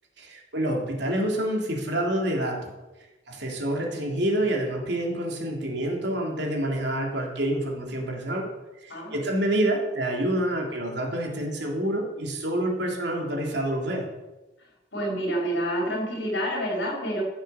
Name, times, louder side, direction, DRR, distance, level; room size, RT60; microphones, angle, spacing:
voice 1, 0.2-2.6 3.3-8.5 8.8-14.1, right 1 dB, 65° right, 0 dB, 3.3 m, -27 dB
voice 2, 14.9-17.2, right 1 dB, 70° left, -2 dB, 5.6 m, -28 dB
15.0 x 8.0 x 7.2 m, 1.0 s
head